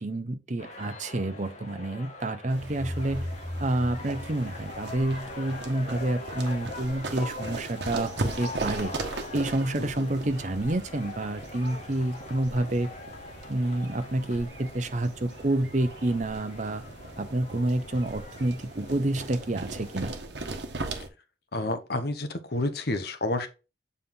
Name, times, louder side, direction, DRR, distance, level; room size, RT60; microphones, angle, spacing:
voice 1, 0.0-3.3 3.6-8.9 9.3-12.9 13.5-16.8 17.2-20.1, right 1 dB, 40° right, 0.8 m, -29 dB
sound 1, 0.6-20.2, left 2 dB, 40° left, 1.4 m, -43 dB
sound 2, 2.5-21.1, right 2 dB, 70° right, 1.2 m, -39 dB
sound 3, 2.6-5.5, left 1 dB, 5° left, 0.6 m, -38 dB
voice 2, 9.7-10.1 21.5-23.5, left 2 dB, 60° left, 1.1 m, -30 dB
7.5 x 4.2 x 3.8 m
head